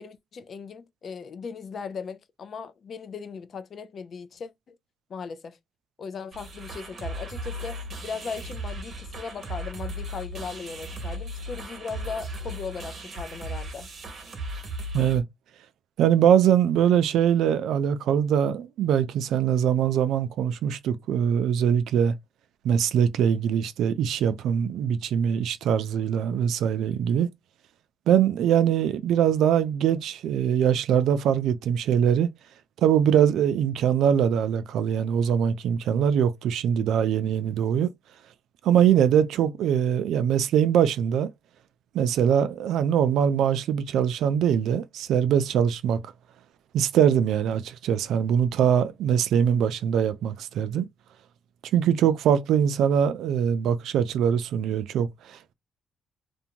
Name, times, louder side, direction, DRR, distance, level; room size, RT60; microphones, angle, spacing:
voice 1, 0.0-4.8 5.1-5.6 6.0-13.9, left 5 dB, 50° left, 0.4 m, -38 dB
sound 1, 6.3-15.2, right 1 dB, 45° right, 0.9 m, -36 dB
voice 2, 16.0-22.1 22.6-27.3 28.1-32.3 32.8-37.9 38.6-41.3 41.9-46.0 46.7-50.9 51.7-55.5, right 9 dB, 80° right, 0.3 m, -22 dB
2.5 x 2.1 x 2.8 m
cardioid pair, 100°, 0 cm